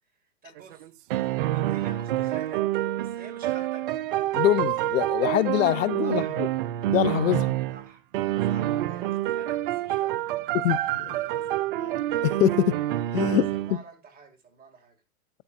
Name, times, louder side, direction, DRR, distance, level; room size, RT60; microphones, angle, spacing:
voice 1, 0.4-0.9 1.4-2.7 2.9-3.8 6.0-6.3 7.7-8.0 8.4-11.6 13.3-13.4 13.7-15.0, right 5 dB, 20° right, 2.6 m, -48 dB
sound 1, 0.6-7.9 8.1-13.8, right 14 dB, 40° right, 0.5 m, -27 dB
voice 2, 4.3-6.5 6.9-7.5 10.5-11.2 11.8-11.9 12.2-12.8 13.1-13.8, left 14 dB, 60° left, 0.6 m, -24 dB
12.0 x 9.7 x 2.6 m
hypercardioid pair, 130°, 44 cm